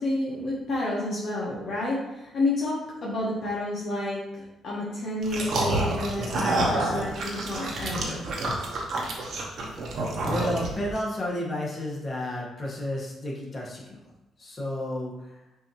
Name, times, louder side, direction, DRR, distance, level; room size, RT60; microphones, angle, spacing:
voice 1, 0.0-8.6, left 2 dB, 55° left, -5 dB, 1.1 m, -30 dB
sound 1, 5.2-11.0, right 2 dB, 65° right, 1.0 m, -28 dB
voice 2, 10.2-14.0 14.4-15.5, left 1 dB, 35° left, -4 dB, 1.5 m, -32 dB
6.2 x 2.8 x 3.0 m, 0.95 s
cardioid pair, 90°, 0 cm